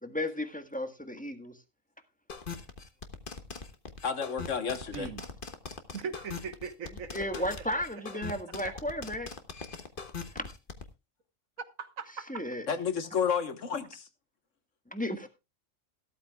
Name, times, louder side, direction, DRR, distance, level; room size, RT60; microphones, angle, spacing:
voice 1, 0.0-1.6 7.1-9.3 10.3-10.5 12.3-12.6 14.9-15.3, left 1 dB, 5° left, 1.3 m, -34 dB
sound 1, 2.3-10.8, left 4 dB, 40° left, 1.5 m, -40 dB
voice 2, 4.0-5.1 12.7-14.1, left 6 dB, 65° left, 1.6 m, -31 dB
voice 3, 4.9-5.2 5.9-8.7 11.8-12.4, right 5 dB, 80° right, 1.7 m, -41 dB
15.0 x 13.0 x 2.3 m
omnidirectional pair, 1.4 m